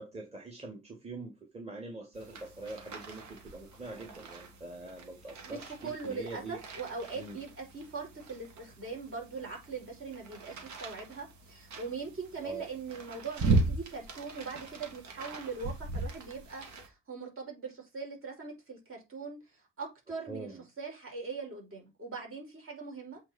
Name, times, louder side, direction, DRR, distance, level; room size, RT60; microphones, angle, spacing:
voice 1, 0.0-6.6 7.1-7.4 12.4-12.6 20.3-20.6, right 2 dB, 20° right, 2.5 m, -43 dB
sound 1, 2.1-16.9, right 3 dB, 70° right, 2.2 m, -38 dB
voice 2, 5.8-19.4 19.8-23.2, right 4 dB, 45° right, 5.0 m, -41 dB
7.9 x 4.8 x 4.3 m
cardioid pair, 90°, 30 cm